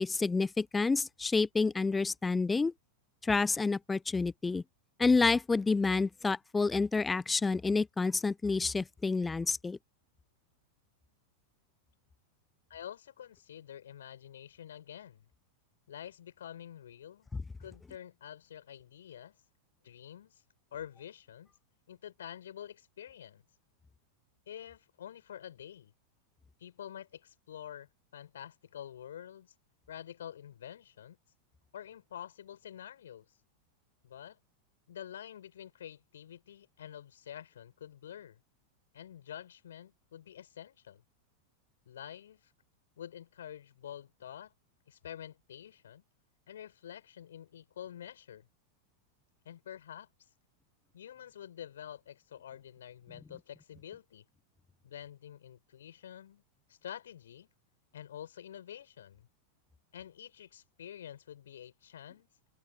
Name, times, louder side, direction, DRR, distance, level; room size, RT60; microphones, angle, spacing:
voice 1, 0.0-2.7 3.2-4.6 5.0-9.8, left 4 dB, 10° left, 0.6 m, -29 dB
voice 2, 12.7-15.2 15.9-17.3 17.6-19.4 19.8-20.4 20.7-21.5 21.9-23.4 24.5-25.9 26.6-29.5 29.9-31.2 31.7-33.3 34.0-34.4 34.9-38.4 38.9-41.0 41.8-42.5 43.0-44.5 44.9-46.0 46.5-48.5 49.4-50.1 50.9-54.2 54.8-56.4 56.7-57.5 57.9-59.3 59.9-62.3, left 10 dB, 65° left, 6.7 m, -48 dB
open air
figure-of-eight pair, 90°, 0 cm